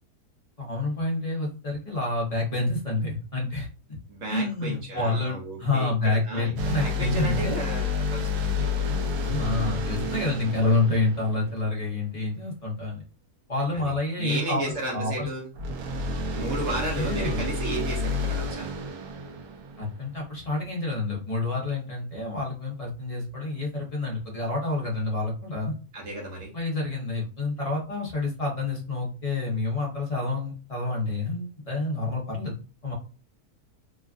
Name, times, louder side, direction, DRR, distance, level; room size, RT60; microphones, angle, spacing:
voice 1, 0.6-3.7 4.3-7.6 9.2-13.0 13.5-14.6 14.9-15.3 16.9-17.4 19.8-25.7 26.5-32.9, left 2 dB, 30° left, -3 dB, 0.7 m, -28 dB
voice 2, 4.1-8.5 13.7-15.5 16.3-18.7 25.9-26.5, right 2 dB, 60° right, -2 dB, 1.1 m, -34 dB
sound 1, 6.6-12.0 15.5-20.3, left 3 dB, 80° right, 1.1 m, -30 dB
3.0 x 2.4 x 2.4 m, 0.34 s
omnidirectional pair, 1.7 m